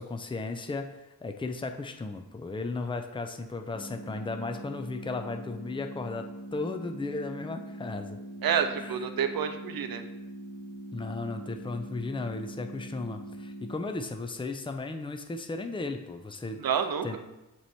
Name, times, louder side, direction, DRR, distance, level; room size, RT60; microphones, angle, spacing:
voice 1, 0.0-6.3 6.5-8.2 8.8-8.9 10.9-16.6 17.0-17.2, left 3 dB, 15° left, 6 dB, 0.5 m, -35 dB
sound 1, 3.7-13.7, right 1 dB, 75° left, 1.3 m, -42 dB
voice 2, 8.4-10.0 16.6-17.1, right 7 dB, 85° right, 8 dB, 0.6 m, -28 dB
7.3 x 3.1 x 4.2 m, 0.99 s
cardioid pair, 50°, 34 cm